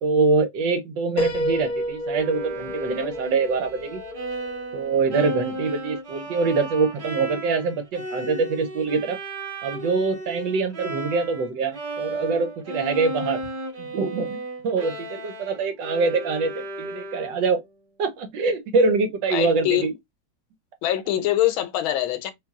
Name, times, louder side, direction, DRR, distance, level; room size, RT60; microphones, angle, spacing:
voice 1, 0.0-4.0 4.7-9.2 9.6-13.4 13.8-17.6 18.0-19.9, right 4 dB, 70° right, 1.3 m, -24 dB
Piano, 1.2-4.9, equal, 55° left, 0.8 m, -30 dB
Bowed string instrument, 2.1-11.5 11.7-17.6, right 1 dB, 35° right, 0.8 m, -34 dB
voice 2, 19.3-19.9 20.8-22.3, left 13 dB, 75° left, 1.4 m, -23 dB
3.3 x 3.0 x 3.5 m
omnidirectional pair, 2.3 m